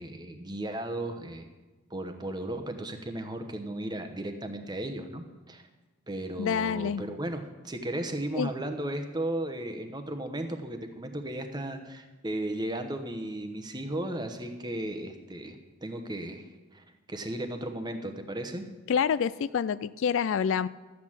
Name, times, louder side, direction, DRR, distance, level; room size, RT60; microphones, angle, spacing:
voice 1, 0.0-1.5 1.9-5.7 6.1-18.6, right 1 dB, 20° right, 6 dB, 1.0 m, -35 dB
voice 2, 6.4-7.1 8.4-8.5 18.9-20.7, left 7 dB, 60° left, 16 dB, 0.3 m, -27 dB
12.5 x 8.4 x 7.4 m, 1.2 s
head